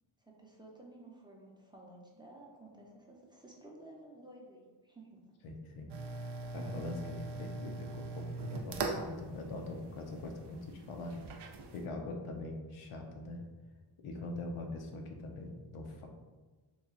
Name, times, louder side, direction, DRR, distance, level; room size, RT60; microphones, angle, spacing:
voice 1, 0.2-5.2, right 1 dB, 10° right, -3 dB, 0.6 m, -54 dB
voice 2, 5.4-5.9 6.5-11.2 11.7-13.4 14.0-16.1, left 2 dB, 90° left, 3 dB, 0.6 m, -42 dB
sound 1, 5.9-11.9, right 3 dB, 60° right, 0.5 m, -41 dB
3.1 x 2.3 x 3.6 m, 1.3 s
cardioid pair, 85°, 49 cm